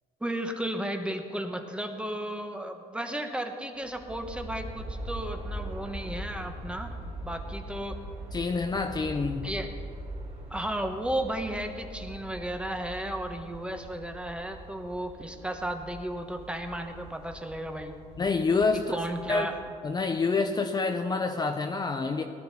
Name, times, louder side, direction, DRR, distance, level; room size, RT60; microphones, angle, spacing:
voice 1, 0.2-6.9 7.2-8.0 9.4-9.7 10.5-17.9 18.7-19.6, right 1 dB, 5° right, 5 dB, 1.1 m, -34 dB
Aircraft, 3.8-19.8, right 1 dB, 35° right, 3.5 m, -42 dB
voice 2, 8.3-9.5 18.2-19.0 19.3-19.5 19.8-22.2, left 4 dB, 25° left, 5 dB, 0.7 m, -27 dB
18.0 x 11.5 x 4.2 m, 2.4 s
cardioid pair, 110°, 17 cm